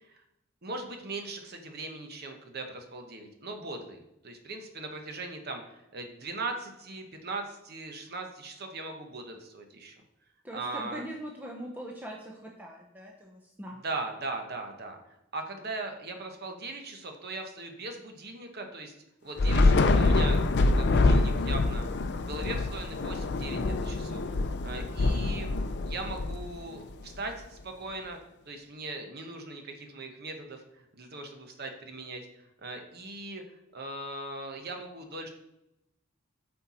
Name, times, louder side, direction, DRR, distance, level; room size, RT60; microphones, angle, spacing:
voice 1, 0.6-4.0 4.2-10.0 10.5-11.0 13.8-15.0 15.3-19.0 19.2-20.4 20.7-21.9 22.1-25.5 25.8-28.2 28.5-32.2 32.6-33.4 33.7-35.3, right 2 dB, 50° right, 4 dB, 1.0 m, -39 dB
voice 2, 10.4-13.8, right 1 dB, 10° right, -1 dB, 0.7 m, -42 dB
Thunder / Rain, 19.4-26.9, left 2 dB, 55° left, 0.5 m, -25 dB
7.9 x 4.4 x 4.3 m, 0.85 s
head